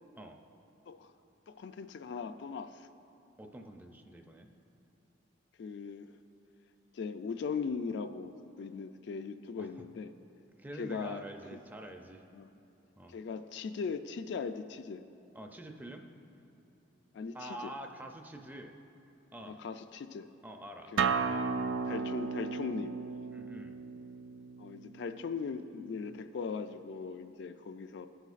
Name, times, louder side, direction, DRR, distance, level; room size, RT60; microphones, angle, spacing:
voice 1, 1.5-2.9 5.6-6.1 6.9-10.1 10.7-11.2 12.3-12.5 13.1-15.0 17.1-17.7 19.5-20.3 20.9-21.2 21.9-22.9 24.6-28.1, left 5 dB, 65° left, 9 dB, 0.3 m, -39 dB
voice 2, 3.4-4.5 9.6-9.8 10.6-12.2 13.0-13.2 15.3-16.1 17.3-18.7 19.3-19.6 20.4-20.9 23.3-23.8, right 1 dB, 10° right, 4 dB, 0.4 m, -46 dB
Acoustic guitar, 21.0-26.2, right 5 dB, 85° right, 0.4 m, -35 dB
15.5 x 7.9 x 2.4 m, 3.0 s
head